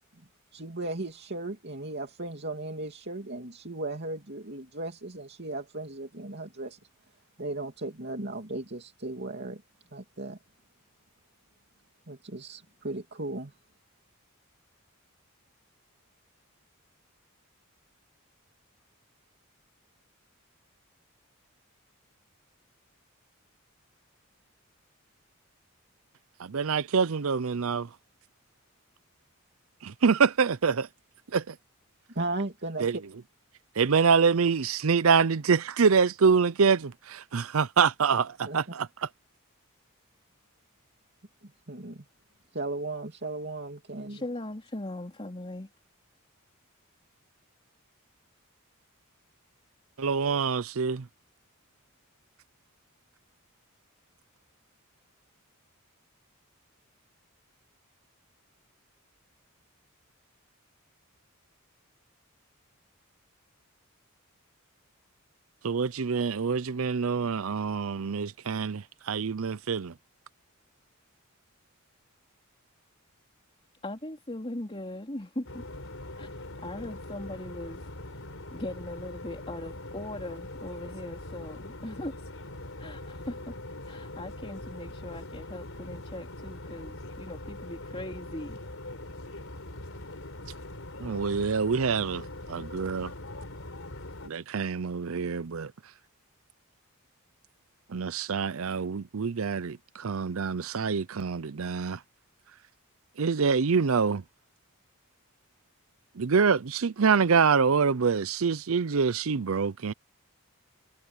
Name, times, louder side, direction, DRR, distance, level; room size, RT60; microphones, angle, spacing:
voice 1, 0.5-6.8 7.4-9.6 9.9-10.4 12.1-13.5 32.1-33.0 38.4-38.6 41.4-42.0 42.5-44.2, right 2 dB, 50° right, 2.8 m, -36 dB
voice 2, 26.4-27.9 29.8-30.9 31.3-31.5 32.8-33.0 33.8-38.9 50.0-51.1 65.6-69.9 91.0-92.2 92.5-93.1 94.2-95.7 97.9-102.0 103.2-104.2 106.2-109.9, right 5 dB, 70° right, 0.6 m, -25 dB
voice 3, 44.1-45.7 73.8-75.6 76.1-78.2 78.5-82.2 82.7-83.6 83.8-88.6, left 1 dB, 25° left, 3.2 m, -39 dB
sound 1, 75.5-94.3, left 1 dB, 65° left, 4.7 m, -42 dB
head